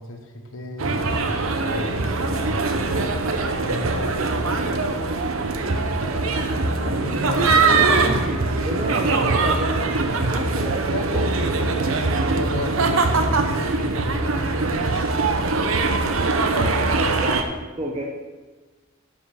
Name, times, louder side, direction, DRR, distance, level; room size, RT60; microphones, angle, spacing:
voice 1, 0.0-3.0 3.6-4.9 6.8-8.2 10.9-15.2 16.5-17.4, left 2 dB, 80° left, 5 dB, 1.2 m, -34 dB
sound 1, 0.8-17.4, right 3 dB, 90° right, 0.9 m, -22 dB
voice 2, 5.6-6.2 6.7-7.0 7.4-11.3 16.0-16.3 16.7-17.4 17.8-18.0, equal, 30° right, -2 dB, 1.0 m, -31 dB
10.5 x 5.7 x 5.7 m, 1.3 s
head